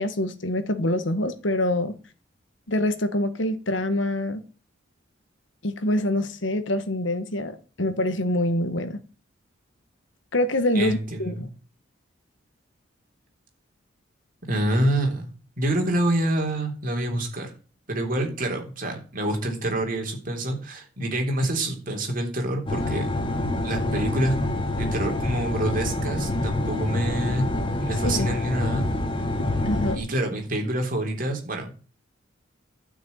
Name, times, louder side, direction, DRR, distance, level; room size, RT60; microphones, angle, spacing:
voice 1, 0.0-1.9 2.7-4.4 5.6-9.0 10.3-11.5 28.0-28.3 29.6-30.0, left 1 dB, 70° left, 1.6 m, -25 dB
voice 2, 10.7-11.5 14.5-17.5 17.9-23.1 23.6-24.3 24.8-27.5 27.8-28.9 29.9-31.7, right 1 dB, 45° right, 3.5 m, -27 dB
sound 1, 22.7-30.0, left 2 dB, 25° left, 2.1 m, -27 dB
12.5 x 6.5 x 9.3 m
head